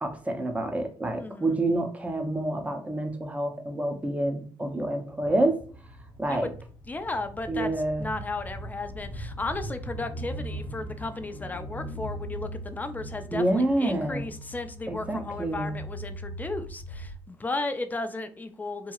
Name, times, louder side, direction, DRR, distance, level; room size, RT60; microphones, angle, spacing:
voice 1, 0.0-5.6 6.2-6.5 7.5-8.1 13.3-14.3 14.9-15.8, right 1 dB, 15° right, 5 dB, 0.7 m, -28 dB
voice 2, 1.2-1.6 6.3-6.5 6.9-7.7 8.0-18.9, left 3 dB, 20° left, 8 dB, 0.4 m, -34 dB
sound 1, 5.2-17.2, right 1 dB, 50° left, 0.9 m, -40 dB
2.9 x 2.7 x 2.4 m, 0.41 s
cardioid pair, 80°, 9 cm